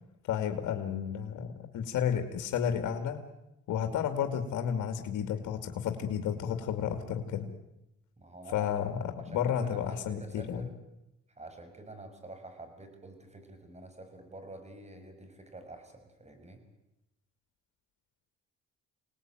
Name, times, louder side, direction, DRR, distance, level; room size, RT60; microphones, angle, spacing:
voice 1, 0.3-3.2 3.7-7.5 8.5-10.6, left 8 dB, 80° left, 6 dB, 2.6 m, -32 dB
voice 2, 8.2-8.9 9.2-10.7 11.4-16.6, right 2 dB, 20° right, 7 dB, 6.5 m, -48 dB
27.5 x 19.0 x 9.3 m, 0.89 s
cardioid pair, 90°, 30 cm